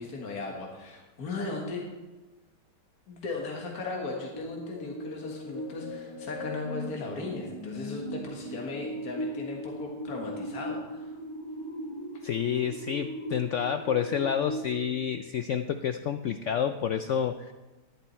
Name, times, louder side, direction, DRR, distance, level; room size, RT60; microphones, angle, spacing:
voice 1, 0.0-1.9 3.1-11.1, left 3 dB, 60° left, 0 dB, 2.2 m, -37 dB
sound 1, 4.3-15.0, equal, 25° left, 0.8 m, -38 dB
voice 2, 12.2-17.5, left 8 dB, 80° left, 9 dB, 0.6 m, -29 dB
12.5 x 11.0 x 4.4 m, 1.1 s
omnidirectional pair, 1.8 m